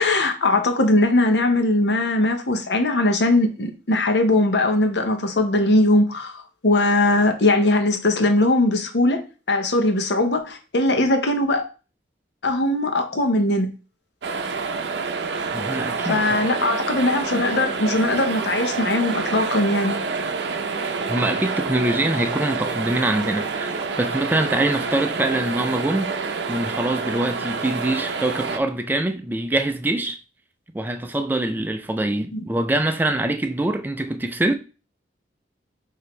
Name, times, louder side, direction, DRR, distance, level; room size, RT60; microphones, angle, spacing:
voice 1, 0.0-6.3 6.6-9.2 9.5-11.6 12.4-13.7 16.0-20.0 32.3-32.4, left 2 dB, 75° left, 0.9 m, -20 dB
sound 1, 14.2-28.6, right 4 dB, 75° right, 0.5 m, -27 dB
voice 2, 15.5-16.4 21.1-26.1 26.5-30.2 30.7-34.5, right 1 dB, 10° right, 0.4 m, -24 dB
6.1 x 2.7 x 3.1 m
head